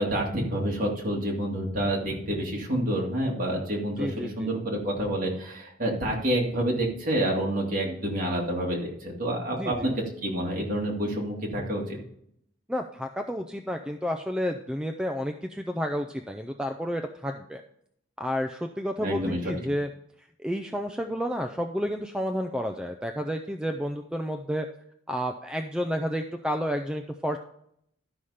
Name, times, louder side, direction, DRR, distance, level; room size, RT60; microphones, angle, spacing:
voice 1, 0.0-9.9 10.2-12.0 19.0-19.5, right 1 dB, 40° right, -2 dB, 2.4 m, -28 dB
voice 2, 4.0-4.5 9.5-9.9 12.7-17.6 18.2-19.9 20.4-24.7 25.1-27.4, equal, 5° right, 5 dB, 0.4 m, -31 dB
12.0 x 5.6 x 4.9 m, 0.70 s
head